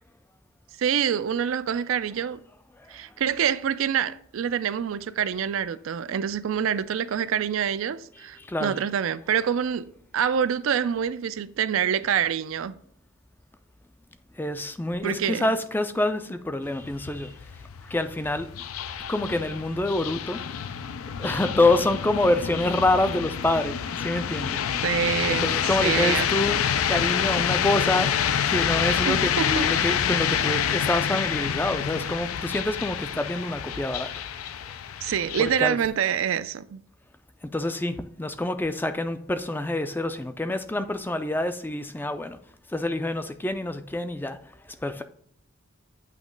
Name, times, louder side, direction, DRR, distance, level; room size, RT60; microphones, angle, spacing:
voice 1, 0.8-2.4 2.9-9.9 10.1-12.7 15.0-15.5 24.8-25.5 25.8-26.3 29.0-29.7 35.0-36.8, right 8 dB, 75° right, 0.4 m, -26 dB
voice 2, 8.1-8.8 9.4-9.5 14.4-17.4 17.8-18.6 19.1-20.4 21.2-24.6 25.3-34.1 35.4-35.8 37.4-42.4 42.7-44.4 44.8-45.0, left 2 dB, 10° left, 0.3 m, -27 dB
sound 1, 16.6-35.6, left 8 dB, 90° left, 0.4 m, -27 dB
8.4 x 3.0 x 5.1 m
head